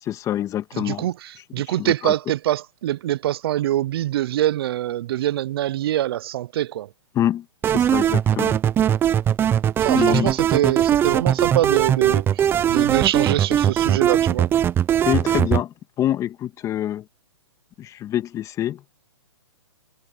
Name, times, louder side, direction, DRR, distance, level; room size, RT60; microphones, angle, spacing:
voice 1, 0.0-1.1 1.8-2.1 7.1-8.6 9.9-10.3 15.0-17.0 17.8-18.8, left 12 dB, 20° left, 1.7 m, -26 dB
voice 2, 0.7-6.9 9.8-14.5, right 13 dB, 50° right, 0.6 m, -24 dB
sound 1, 7.6-15.6, right 10 dB, 15° right, 0.6 m, -20 dB
hypercardioid pair, 140°, 16 cm